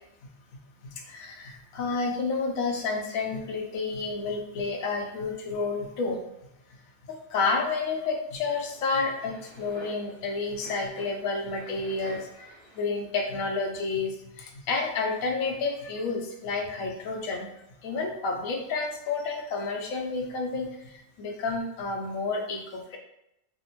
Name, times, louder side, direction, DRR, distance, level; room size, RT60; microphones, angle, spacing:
voice 1, 0.9-6.2 7.1-17.5 17.8-23.0, left 4 dB, 70° left, 2 dB, 0.9 m, -30 dB
sound 1, 8.5-12.8, right 2 dB, 45° right, 1.7 m, -49 dB
3.4 x 2.1 x 2.9 m, 0.82 s
omnidirectional pair, 1.7 m